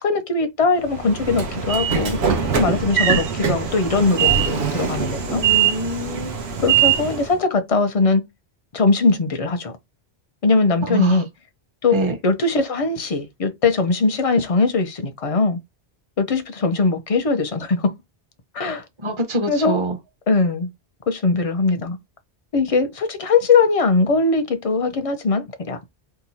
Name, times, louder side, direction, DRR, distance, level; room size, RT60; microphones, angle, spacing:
voice 1, 0.0-2.2 2.6-5.4 6.6-8.2 8.7-9.7 10.4-11.3 11.8-12.0 12.2-15.6 16.2-17.9 18.5-18.8 19.5-19.8 20.3-20.7 21.1-22.0 22.5-25.8, left 3 dB, 40° left, 0.6 m, -20 dB
Train / Sliding door, 0.8-7.3, right 8 dB, 80° right, 1.0 m, -22 dB
voice 2, 5.3-6.4 10.9-11.2 11.9-12.1 19.0-20.0, right 1 dB, 30° right, 0.8 m, -24 dB
2.9 x 2.2 x 4.1 m
omnidirectional pair, 1.1 m